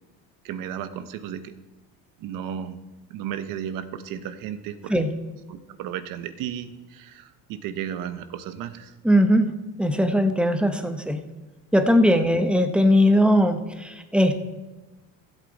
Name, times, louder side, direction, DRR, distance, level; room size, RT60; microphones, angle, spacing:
voice 1, 0.4-1.5 2.2-2.8 3.1-4.9 5.5-8.9, right 9 dB, 65° right, 11 dB, 1.0 m, -34 dB
voice 2, 9.0-9.5 9.8-11.2 11.7-14.4, equal, 5° right, 7 dB, 0.9 m, -20 dB
15.5 x 8.2 x 4.1 m, 1.1 s
cardioid pair, 115°, 35 cm